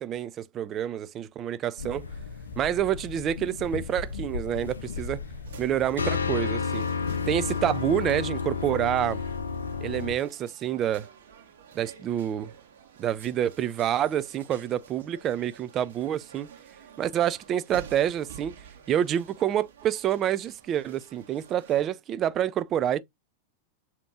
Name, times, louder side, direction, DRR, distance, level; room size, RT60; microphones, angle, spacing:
voice 1, 0.0-2.1 2.6-5.2 5.6-6.9 7.3-9.2 9.8-11.1 11.7-12.5 13.0-16.5 17.0-18.6 18.9-23.0, right 10 dB, 30° right, 0.4 m, -27 dB
sound 1, 1.8-10.2, left 5 dB, 70° left, 0.6 m, -32 dB
sound 2, 5.4-21.9, right 7 dB, 60° right, 1.2 m, -51 dB
6.8 x 2.9 x 2.4 m
figure-of-eight pair, 90°, 0 cm